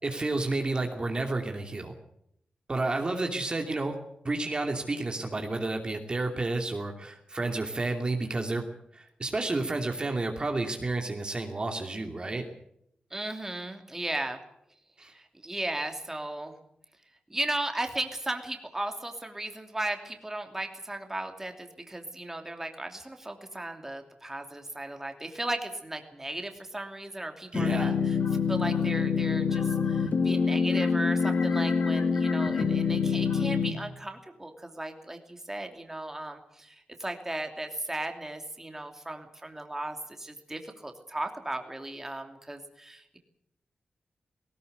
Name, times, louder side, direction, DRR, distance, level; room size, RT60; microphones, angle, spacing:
voice 1, 0.0-1.9 2.7-3.9 4.2-8.6 8.9-12.5 15.0-15.1 27.5-27.9, right 2 dB, 35° right, 3 dB, 2.6 m, -31 dB
voice 2, 13.1-14.4 15.0-16.5 17.3-28.2 28.5-43.2, right 1 dB, 15° right, 4 dB, 2.9 m, -36 dB
sound 1, 27.5-33.7, left 5 dB, 65° left, 2.1 m, -26 dB
19.0 x 18.5 x 8.2 m, 0.75 s
wide cardioid pair, 100°, 3 cm